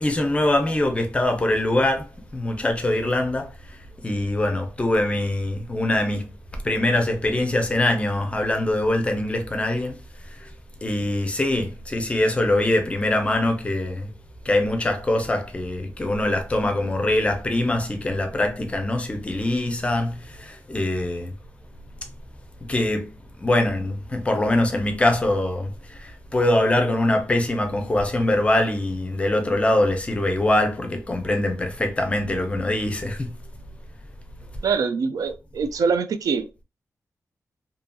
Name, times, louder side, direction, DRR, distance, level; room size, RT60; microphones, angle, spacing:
voice 1, 0.0-6.3 6.6-10.0 10.2-10.5 10.8-14.1 14.4-21.3 22.7-23.1 23.4-33.3, left 1 dB, 20° left, 0.5 m, -23 dB
voice 2, 34.6-36.5, right 5 dB, 85° right, 0.4 m, -24 dB
2.7 x 2.7 x 2.2 m
wide cardioid pair, 170°, 6 cm